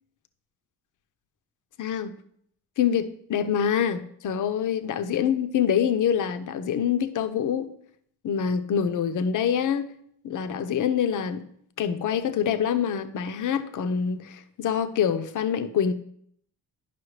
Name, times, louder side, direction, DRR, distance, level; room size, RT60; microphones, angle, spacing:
voice 1, 1.8-2.1 2.8-7.7 8.2-9.9 10.2-11.4 11.8-15.9, left 8 dB, 50° left, 0.7 m, -25 dB
11.0 x 5.6 x 3.2 m
cardioid pair, 115°, 40 cm